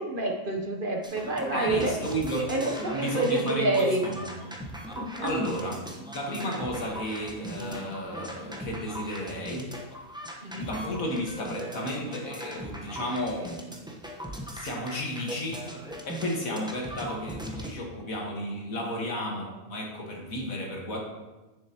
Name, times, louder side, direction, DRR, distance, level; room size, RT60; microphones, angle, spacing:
voice 1, 0.0-1.9 2.3-4.0 5.0-5.3 10.4-10.7 16.5-16.6, right 2 dB, 45° right, 1 dB, 0.9 m, -28 dB
sound 1, 1.0-17.7, right 1 dB, 5° right, 0.8 m, -39 dB
voice 2, 1.5-4.5 5.2-5.8 6.1-9.7 10.5-13.9 14.5-15.7 16.0-21.0, equal, 70° left, -1 dB, 1.9 m, -33 dB
10.0 x 7.2 x 2.9 m, 1.1 s
omnidirectional pair, 1.5 m